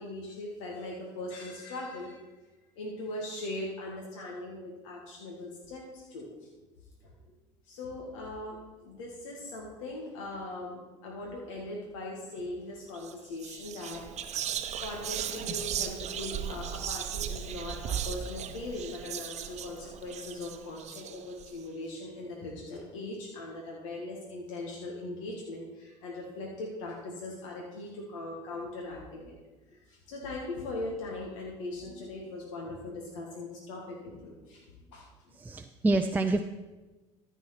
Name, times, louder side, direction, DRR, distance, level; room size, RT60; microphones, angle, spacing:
voice 1, 0.0-2.3 2.8-6.3 7.0-7.1 7.7-14.0 14.8-29.4 29.7-35.4, left 2 dB, 80° left, -2 dB, 1.7 m, -40 dB
Whispering, 12.9-13.1 13.4-21.5, right 9 dB, 45° right, 0.8 m, -37 dB
voice 2, 35.4-36.4, right 2 dB, 10° right, 5 dB, 0.5 m, -27 dB
13.5 x 4.6 x 5.8 m, 1.2 s
hypercardioid pair, 75°, 16 cm